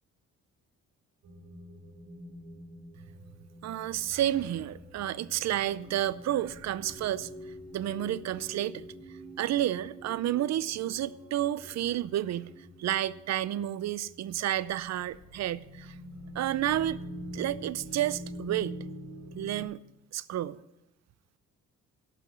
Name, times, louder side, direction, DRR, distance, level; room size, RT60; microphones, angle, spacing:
sound 1, 1.2-19.6, equal, 85° right, 4.1 m, -46 dB
voice 1, 3.6-7.3 7.7-8.9 9.4-12.5 12.8-16.0 16.3-17.0 17.3-18.8 19.3-19.8 20.1-20.6, right 12 dB, 60° right, 0.6 m, -30 dB
11.5 x 6.0 x 8.4 m
cardioid pair, 90°, 30 cm